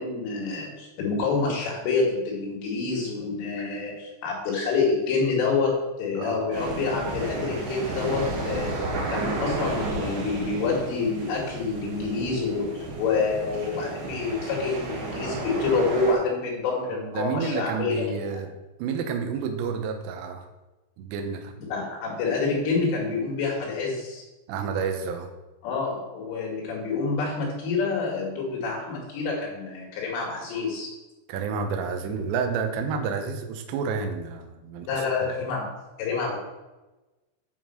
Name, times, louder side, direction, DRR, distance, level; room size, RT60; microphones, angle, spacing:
voice 1, 0.0-5.7 6.0-8.7 9.1-18.4 21.7-24.2 25.6-30.9 34.9-35.7 36.0-36.4, left 4 dB, 85° left, -3 dB, 4.7 m, -27 dB
sound 1, 6.5-16.1, right 2 dB, 55° right, 2.4 m, -32 dB
voice 2, 16.9-18.5 18.8-20.5 21.0-21.6 24.5-25.3 31.3-35.3, right 5 dB, 75° right, 5 dB, 2.9 m, -30 dB
9.8 x 5.4 x 6.3 m, 1.1 s
omnidirectional pair, 5.5 m